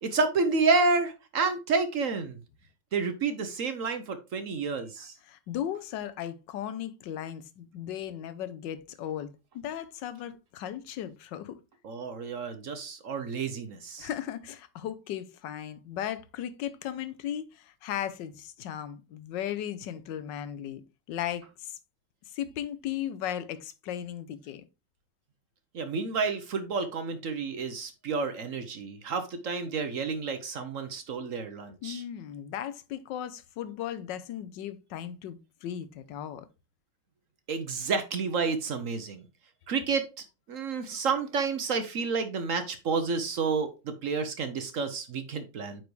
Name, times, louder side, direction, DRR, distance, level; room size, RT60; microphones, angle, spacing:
voice 1, 0.0-2.4 2.9-5.1 11.8-14.1 25.7-32.0 37.5-39.2 39.7-40.1 40.5-45.8, right 4 dB, 55° right, 0.9 m, -30 dB
voice 2, 5.3-11.6 14.0-20.8 21.1-21.8 22.2-24.6 31.8-36.5, left 10 dB, 75° left, 1.4 m, -36 dB
9.3 x 4.7 x 3.1 m
omnidirectional pair, 2.0 m